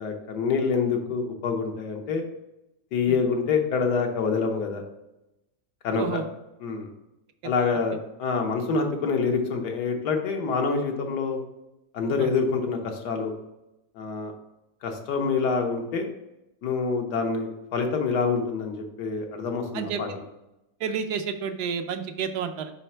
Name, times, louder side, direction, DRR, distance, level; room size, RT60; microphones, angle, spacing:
voice 1, 0.0-2.3 2.9-4.8 5.8-6.2 6.6-6.9 7.4-11.4 11.9-13.3 14.0-14.3 14.8-16.1 16.6-20.2, left 5 dB, 90° left, 3 dB, 1.5 m, -26 dB
voice 2, 20.8-22.7, right 6 dB, 80° right, 7 dB, 1.2 m, -30 dB
5.0 x 4.4 x 4.3 m, 0.92 s
omnidirectional pair, 1.7 m